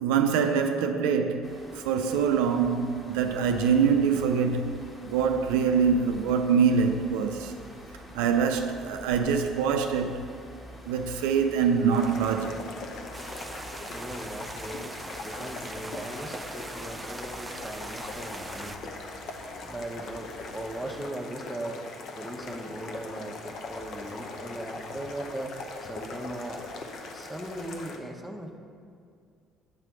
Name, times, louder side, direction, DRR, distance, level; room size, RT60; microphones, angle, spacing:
voice 1, 0.0-7.5 8.1-10.3 10.9-12.7, right 6 dB, 80° right, 0.4 m, -25 dB
sound 1, 1.4-21.1, equal, 30° left, 1.5 m, -47 dB
sound 2, 11.9-28.0, left 3 dB, 60° left, 0.7 m, -41 dB
sound 3, 13.1-18.8, right 2 dB, 20° right, 0.4 m, -41 dB
voice 2, 13.9-14.9 15.2-19.0 19.6-21.8 22.2-25.5 25.8-26.6 27.1-28.6, right 1 dB, 5° right, 0.9 m, -38 dB
8.1 x 3.3 x 6.1 m
hypercardioid pair, 60°, 0 cm